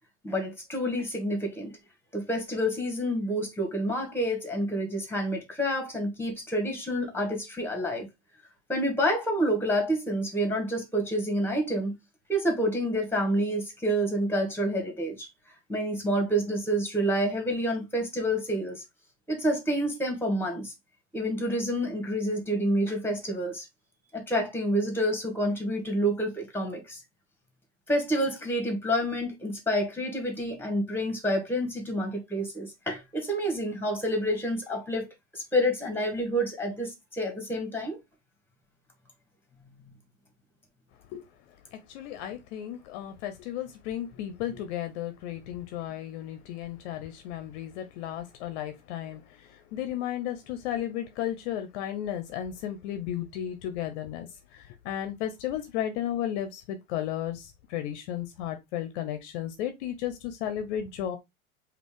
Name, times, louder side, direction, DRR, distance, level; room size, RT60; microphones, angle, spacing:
voice 1, 0.2-1.7 2.1-8.1 8.7-12.0 12.3-15.3 15.7-18.8 19.3-20.7 21.1-23.7 24.1-27.0 27.9-38.0, equal, 5° left, 1.9 m, -28 dB
voice 2, 41.7-61.2, left 11 dB, 50° left, 0.9 m, -34 dB
5.1 x 2.8 x 3.7 m
figure-of-eight pair, 85°, 43 cm